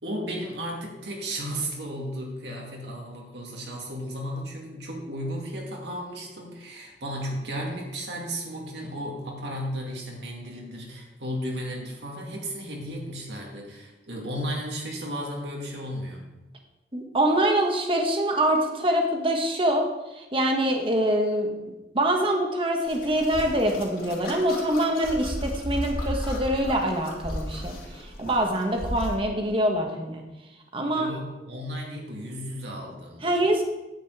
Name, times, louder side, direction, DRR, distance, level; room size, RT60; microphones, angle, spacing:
voice 1, 0.0-16.3 30.8-33.4, equal, 75° right, -1 dB, 2.3 m, -34 dB
voice 2, 16.9-21.5 21.9-30.2 30.7-31.1 33.2-33.6, right 1 dB, 30° right, 2 dB, 1.4 m, -25 dB
sound 1, 22.9-29.2, equal, 55° left, 3.0 m, -35 dB
10.0 x 5.3 x 7.9 m, 1.0 s
head